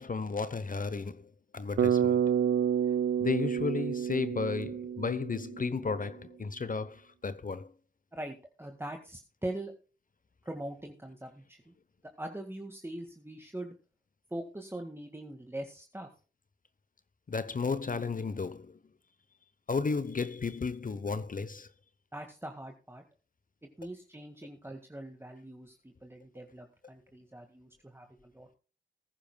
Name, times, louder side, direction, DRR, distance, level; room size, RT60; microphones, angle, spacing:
voice 1, 0.0-2.3 3.2-7.7 17.3-18.8 19.7-21.7, left 4 dB, 45° left, 0.8 m, -33 dB
Bass guitar, 1.8-5.9, right 8 dB, 85° right, 0.5 m, -29 dB
voice 2, 8.1-9.7 10.4-11.7 12.2-13.7 14.3-16.1 22.1-23.0 23.8-28.5, right 1 dB, 10° right, 1.8 m, -42 dB
20.0 x 10.0 x 2.2 m
cardioid pair, 60°, 19 cm